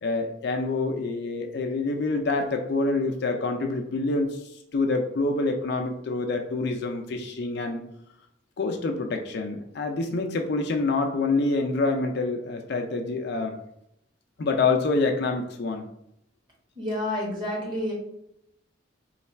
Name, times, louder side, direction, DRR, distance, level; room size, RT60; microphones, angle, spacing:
voice 1, 0.0-4.4 4.7-7.8 8.6-13.5 14.4-15.9, left 3 dB, 60° left, 4 dB, 0.5 m, -26 dB
voice 2, 16.8-17.9, left 1 dB, 25° right, -3 dB, 1.2 m, -29 dB
3.2 x 2.3 x 4.2 m, 0.78 s
head